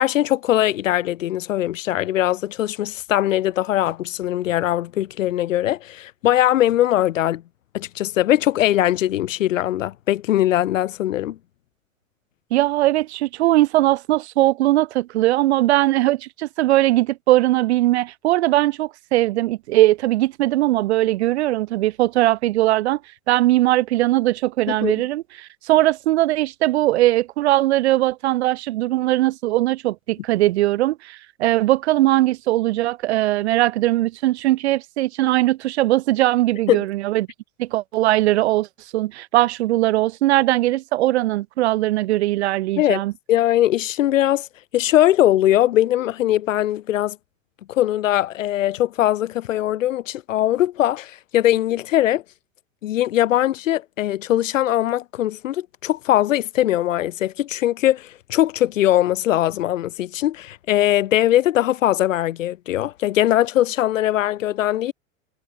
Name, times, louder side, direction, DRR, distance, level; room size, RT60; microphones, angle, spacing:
voice 1, 0.0-7.4 7.7-11.4 24.7-24.9 36.7-36.8 42.8-44.5 44.7-47.2 47.7-52.2 52.8-64.9, left 13 dB, 65° left, 0.6 m, -20 dB
voice 2, 12.5-23.0 23.3-37.3 37.6-38.7 38.9-43.1, right 16 dB, 55° right, 0.5 m, -20 dB
figure-of-eight pair, 85°, 42 cm